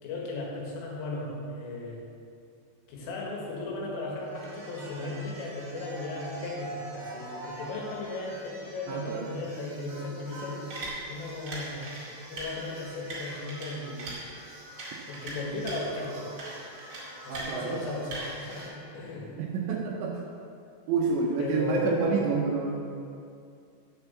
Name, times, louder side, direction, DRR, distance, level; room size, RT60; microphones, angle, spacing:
voice 1, 0.0-2.0 2.9-10.6 11.1-11.9 12.3-14.1 15.1-16.3 17.3-19.4 21.4-22.1, left 2 dB, 80° left, -3 dB, 4.3 m, -36 dB
sound 1, 4.3-18.7, right 1 dB, 50° right, 1.7 m, -42 dB
voice 2, 8.9-9.3 17.3-17.8 19.4-20.2 20.9-22.8, right 5 dB, 80° right, -1 dB, 2.7 m, -28 dB
8.3 x 7.1 x 7.1 m, 2.5 s
omnidirectional pair, 5.8 m